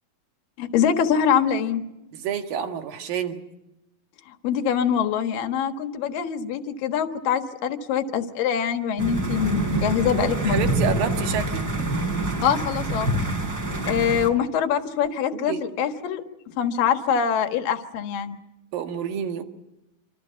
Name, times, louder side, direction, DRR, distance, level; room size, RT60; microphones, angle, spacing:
voice 1, 0.6-1.8 4.4-10.6 12.4-13.1 13.8-18.4, left 8 dB, 65° left, 7 dB, 3.0 m, -24 dB
voice 2, 2.1-3.4 10.0-12.1 15.3-15.6 18.7-19.4, right 8 dB, 65° right, 6 dB, 3.3 m, -29 dB
sound 1, 9.0-14.3, right 1 dB, 25° right, 3.8 m, -26 dB
27.0 x 26.5 x 5.8 m, 0.90 s
omnidirectional pair, 4.5 m